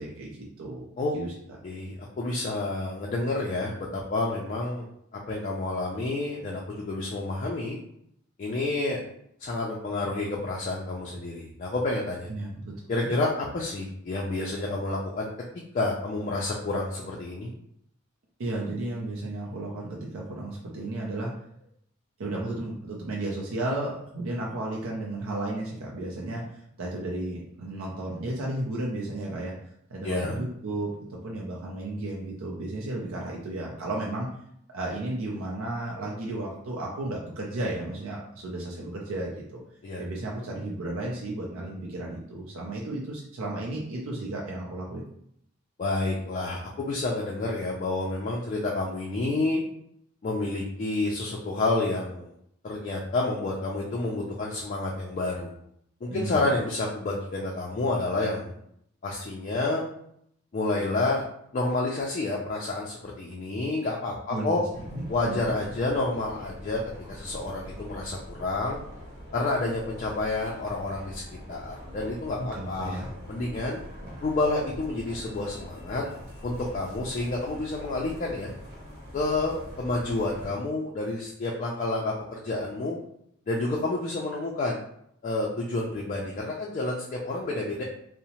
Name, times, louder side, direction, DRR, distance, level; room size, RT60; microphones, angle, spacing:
voice 1, 0.0-0.8 1.1-1.3 12.3-13.2 18.4-21.3 21.6-21.7 22.2-29.5 29.9-34.3 34.7-39.6 40.0-45.0 56.1-56.4 64.3-64.6 64.9-65.5 72.4-73.1, right 2 dB, 80° right, -3 dB, 0.5 m, -33 dB
voice 2, 1.6-7.8 8.4-9.0 9.4-12.3 12.9-15.3 15.7-17.5 30.0-30.4 39.8-40.0 45.8-49.6 50.2-52.3 52.6-55.5 56.0-58.5 59.0-59.8 60.5-61.3 61.5-64.6 65.1-66.8 67.1-68.8 69.3-71.2 71.5-73.8 74.2-76.0 76.4-78.5 79.1-83.0 83.5-84.8 85.2-87.8, left 2 dB, 35° left, -2 dB, 0.3 m, -29 dB
sound 1, 64.7-80.5, equal, 50° right, 0.9 m, -43 dB
2.7 x 2.0 x 2.8 m, 0.71 s
head